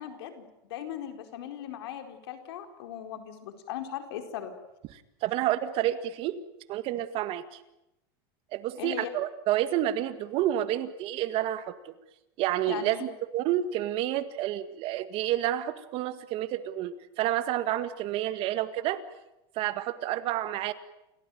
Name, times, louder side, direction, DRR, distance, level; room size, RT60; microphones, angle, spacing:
voice 1, 0.0-4.5 8.8-9.1 12.7-13.1, left 10 dB, 80° left, 6 dB, 4.4 m, -38 dB
voice 2, 5.2-6.4 6.7-7.6 8.5-11.9 12.4-19.0 19.6-20.7, right 13 dB, 45° right, 11 dB, 1.9 m, -29 dB
29.0 x 17.0 x 9.3 m, 0.88 s
supercardioid pair, 145°, 13 cm